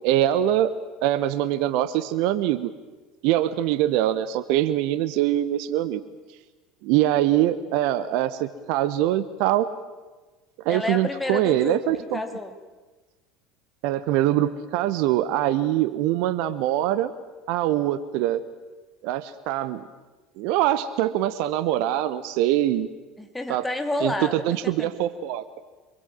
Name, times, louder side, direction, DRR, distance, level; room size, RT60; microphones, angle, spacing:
voice 1, 0.0-0.7 1.0-2.7 3.2-6.0 6.8-9.7 10.6-12.2 13.8-17.1 17.5-18.4 19.0-19.8 20.4-22.9 23.5-23.6 24.0-25.4, right 13 dB, 60° right, 14 dB, 1.0 m, -23 dB
voice 2, 10.7-11.8 12.1-12.5 23.2-24.9, left 2 dB, 10° left, 6 dB, 3.0 m, -30 dB
26.0 x 23.0 x 7.7 m, 1.3 s
figure-of-eight pair, 70°, 0 cm